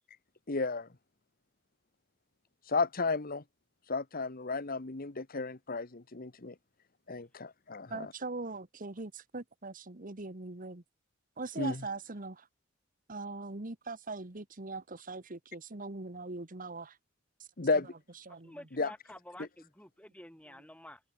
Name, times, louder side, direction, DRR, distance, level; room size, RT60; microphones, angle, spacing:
voice 1, 0.5-0.9 2.7-3.4 3.9-6.5 7.1-8.1 11.6-11.8 17.6-17.9 18.8-18.9 19.4-19.5, left 3 dB, 45° left, 1.3 m, -33 dB
voice 2, 7.9-10.8 11.4-12.5 13.1-17.0 17.4-17.5 18.1-18.5, right 3 dB, 45° right, 1.5 m, -41 dB
voice 3, 18.3-21.0, left 1 dB, 5° left, 7.3 m, -50 dB
open air
head